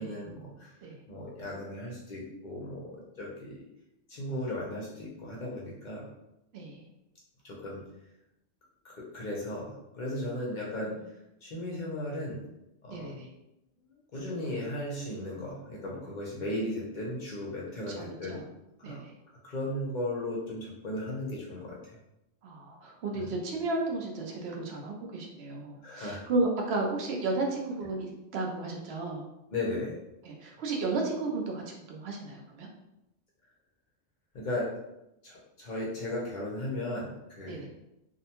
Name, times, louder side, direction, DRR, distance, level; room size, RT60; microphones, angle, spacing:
voice 1, 0.0-0.7 1.1-3.6 4.1-6.1 7.4-7.8 8.8-10.9 11.4-12.4 12.8-13.2 14.1-18.4 18.8-19.0 19.4-22.0 23.1-23.3 25.8-26.2 29.5-29.9 34.3-34.7 35.2-37.6, left 1 dB, 50° left, -4 dB, 0.7 m, -36 dB
voice 2, 6.5-6.8 12.9-13.3 18.0-18.4 18.8-19.1 22.4-29.2 30.2-32.7 37.5-37.7, right 3 dB, 70° right, 0 dB, 0.8 m, -33 dB
2.6 x 2.1 x 2.8 m, 0.87 s
omnidirectional pair, 1.2 m